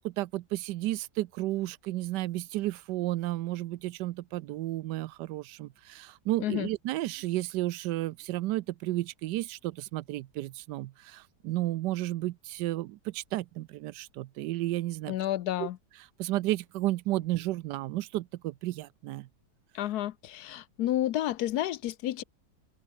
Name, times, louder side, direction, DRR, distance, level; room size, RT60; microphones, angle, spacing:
voice 1, 0.0-15.1 15.6-15.7 16.2-19.3, right 16 dB, 85° right, 1.2 m, -32 dB
voice 2, 15.1-15.8 19.7-22.2, left 13 dB, 70° left, 1.1 m, -30 dB
open air
omnidirectional pair, 1.8 m